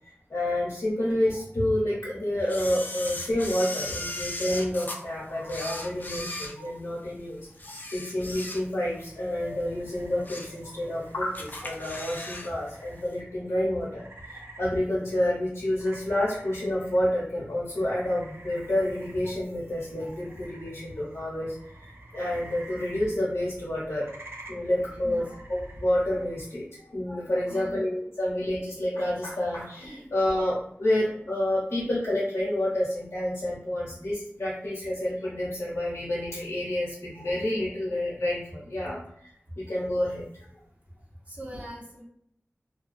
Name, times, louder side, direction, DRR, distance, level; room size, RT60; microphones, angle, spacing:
voice 1, 0.0-24.1 24.5-40.5, left 1 dB, 80° left, -7 dB, 0.8 m, -29 dB
Camera, 2.5-5.0 5.4-7.1 7.5-8.9 9.3-9.5 10.0-10.6 10.9-11.0 11.3-12.5 12.8-12.9, left 2 dB, 40° left, 0.4 m, -37 dB
Lake Birds, 8.9-26.5, right 1 dB, 60° right, 0.5 m, -49 dB
voice 2, 24.9-25.3 27.5-27.8 41.3-42.0, equal, 30° right, -3 dB, 0.8 m, -41 dB
2.3 x 2.2 x 2.5 m, 0.69 s
wide cardioid pair, 65°, 5 cm